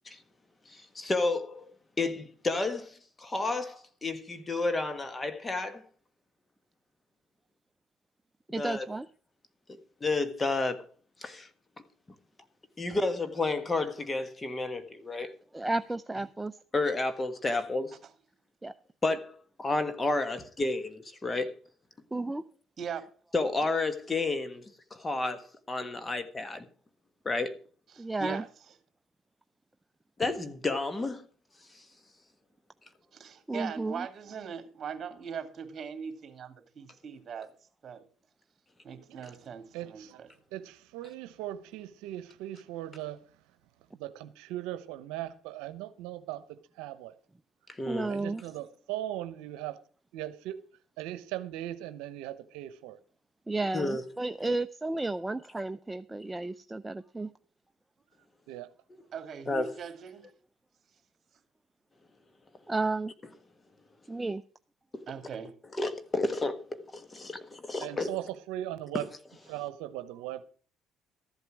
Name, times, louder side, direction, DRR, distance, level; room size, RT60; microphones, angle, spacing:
voice 1, 0.7-1.7 2.0-5.8 8.6-8.9 10.0-10.9 11.2-11.5 12.8-15.3 16.7-17.9 19.0-20.9 21.2-21.5 23.3-24.6 24.9-26.7 27.2-27.6 30.2-31.2 47.8-48.1 53.7-54.0 59.5-59.7 64.9-65.0 65.8-68.1 68.9-69.0, left 3 dB, 25° left, 1.5 m, -31 dB
voice 2, 8.5-9.1 15.5-16.6 18.6-18.7 22.1-22.4 28.0-28.4 33.5-34.1 47.9-48.4 53.5-57.3 62.7-63.1 64.1-64.4, right 2 dB, 15° right, 0.5 m, -32 dB
voice 3, 27.9-28.5 33.1-37.5 37.8-38.0 38.8-40.3 59.1-60.2 65.1-65.5, right 7 dB, 45° right, 2.5 m, -40 dB
voice 4, 39.7-40.2 40.5-43.2 44.0-47.1 48.1-49.8 50.1-50.6 51.0-53.0 54.5-54.6 58.5-58.7 67.8-69.0 69.5-70.5, right 13 dB, 90° right, 0.8 m, -38 dB
13.5 x 8.1 x 6.2 m
supercardioid pair, 85°, 0 cm